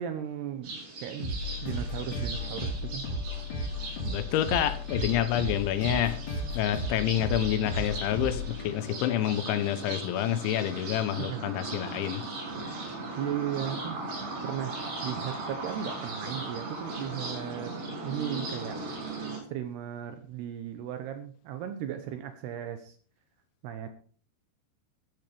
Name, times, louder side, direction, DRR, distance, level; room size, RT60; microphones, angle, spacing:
voice 1, 0.0-1.3 1.6-3.1 11.2-11.4 13.2-14.0 14.4-17.7 18.0-18.8 19.5-23.0 23.6-23.9, right 10 dB, 80° right, 8 dB, 2.5 m, -36 dB
sound 1, 0.6-19.4, right 2 dB, 50° right, 5.9 m, -39 dB
sound 2, 1.2-9.6, left 1 dB, 40° left, 4.6 m, -35 dB
voice 2, 4.0-6.2 6.5-12.2, left 11 dB, 80° left, 11 dB, 3.2 m, -28 dB
13.5 x 12.5 x 3.5 m, 0.42 s
omnidirectional pair, 5.6 m